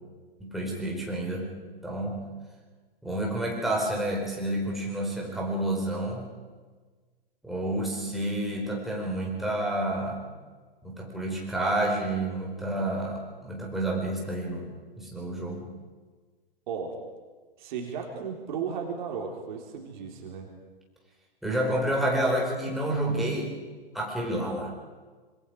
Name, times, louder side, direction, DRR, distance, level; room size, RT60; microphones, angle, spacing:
voice 1, 0.4-1.6 1.8-2.3 3.0-6.3 7.4-10.2 10.8-15.7 21.4-23.6 23.9-24.7, right 1 dB, ahead, -2 dB, 4.5 m, -29 dB
voice 2, 17.6-20.5, right 6 dB, 50° right, 2 dB, 4.0 m, -35 dB
25.5 x 24.0 x 4.9 m, 1.4 s
figure-of-eight pair, 115°, 30 cm